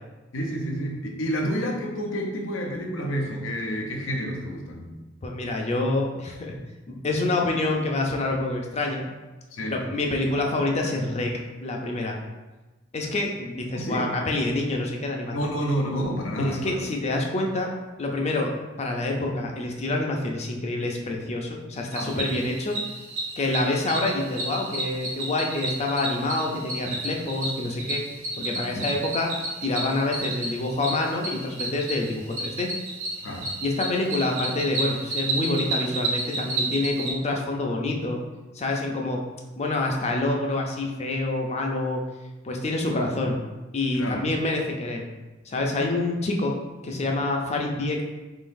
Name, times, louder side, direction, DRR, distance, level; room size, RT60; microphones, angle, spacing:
voice 1, 0.3-4.9 9.5-9.8 13.7-14.0 15.3-16.8 21.9-22.3 28.7-28.8 33.2-33.5 43.9-44.2, equal, 85° left, 1 dB, 0.7 m, -29 dB
voice 2, 5.2-6.5 6.9-9.0 9.7-11.3 11.6-12.2 12.9-15.5 16.4-17.7 18.0-18.5 18.8-22.8 23.4-28.0 28.4-32.7 33.6-38.2 38.5-39.2 39.6-42.0 42.4-43.4 43.7-45.1 45.5-46.5 46.8-48.0, left 2 dB, 35° left, 1 dB, 0.5 m, -27 dB
Cricket, 21.9-37.1, right 2 dB, 85° right, 1.0 m, -31 dB
3.8 x 3.8 x 2.6 m, 1.2 s
head